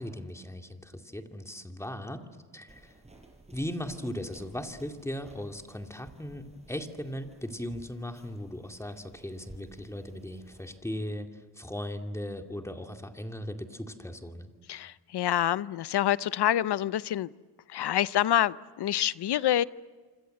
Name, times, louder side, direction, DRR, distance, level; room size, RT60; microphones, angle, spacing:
voice 1, 0.0-2.2 2.5-2.9 3.5-14.5, left 1 dB, 5° left, 5 dB, 2.4 m, -38 dB
sound 1, 2.7-10.8, right 2 dB, 15° right, 5.7 m, -56 dB
voice 2, 14.7-17.3 17.7-19.6, left 12 dB, 80° left, 17 dB, 0.8 m, -27 dB
27.0 x 27.0 x 7.8 m, 1.5 s
wide cardioid pair, 115°, 40 cm